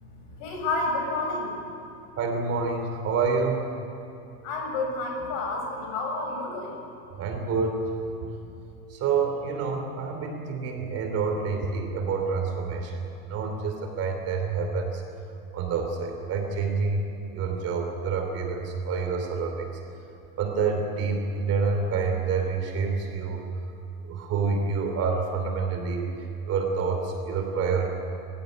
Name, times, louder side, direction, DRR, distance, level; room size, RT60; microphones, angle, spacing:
voice 1, 0.1-1.6 4.4-6.7, left 2 dB, 50° left, 1 dB, 7.4 m, -30 dB
voice 2, 2.2-3.6 7.2-7.8 8.9-13.0 13.3-15.0 15.5-17.0 17.3-19.7 20.4-23.5 24.0-26.1 26.5-27.9, right 5 dB, 30° right, 4 dB, 2.9 m, -27 dB
26.5 x 16.0 x 9.1 m, 2.9 s
supercardioid pair, 150°, 48 cm